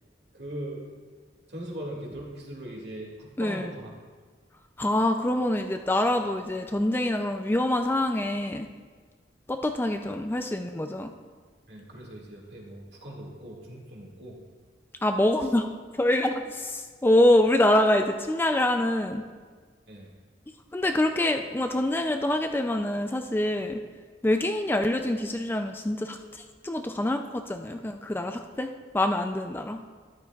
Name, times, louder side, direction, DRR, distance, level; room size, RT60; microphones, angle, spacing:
voice 1, 0.3-0.8 1.5-3.9 11.7-14.4 19.9-20.1, right 1 dB, 60° right, -2 dB, 2.0 m, -40 dB
voice 2, 3.4-3.7 4.8-8.7 9.5-11.1 15.0-19.2 20.7-23.8 24.2-29.8, left 1 dB, 10° left, 5 dB, 0.3 m, -25 dB
12.5 x 11.5 x 2.4 m, 1.5 s
head